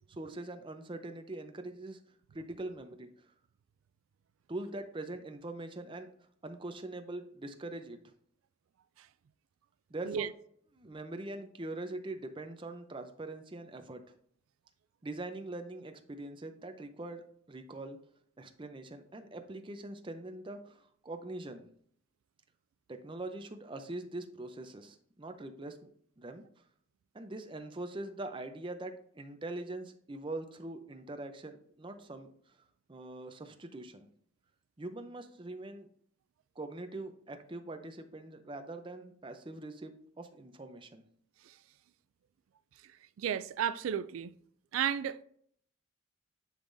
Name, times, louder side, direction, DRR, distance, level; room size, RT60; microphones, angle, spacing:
voice 1, 0.1-2.0 2.3-3.3 4.5-6.1 6.4-8.0 9.9-10.3 10.7-14.0 15.0-17.2 17.5-18.0 18.4-21.6 22.9-25.9 26.2-26.4 27.1-32.3 32.9-34.1 34.8-35.9 36.6-41.0, right 2 dB, 25° right, 0.6 m, -43 dB
voice 2, 43.2-44.3 44.7-45.2, right 9 dB, 90° right, 0.3 m, -33 dB
10.0 x 3.8 x 2.6 m
head